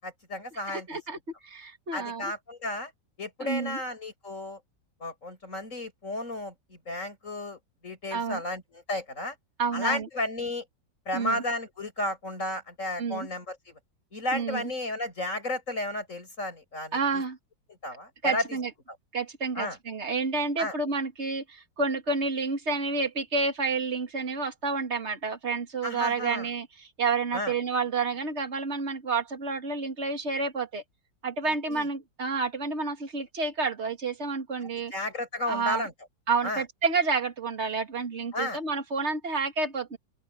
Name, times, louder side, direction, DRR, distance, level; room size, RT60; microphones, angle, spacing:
voice 1, 0.0-1.0 1.9-2.9 3.2-4.6 5.0-9.4 9.7-10.7 11.1-13.8 14.1-17.2 17.8-18.4 19.6-19.8 20.6-20.7 25.8-26.5 27.3-27.5 31.7-31.9 34.6-35.9 36.4-36.6 38.3-38.6, left 1 dB, 40° left, 7.7 m, -33 dB
voice 2, 0.7-1.2 1.4-2.3 3.4-3.8 8.1-8.4 9.6-10.1 11.1-11.4 13.0-13.3 14.3-14.7 16.9-17.4 18.2-18.7 19.1-30.8 31.2-34.9 35.5-35.8 36.3-40.0, right 4 dB, 35° right, 2.7 m, -29 dB
open air
omnidirectional pair, 2.0 m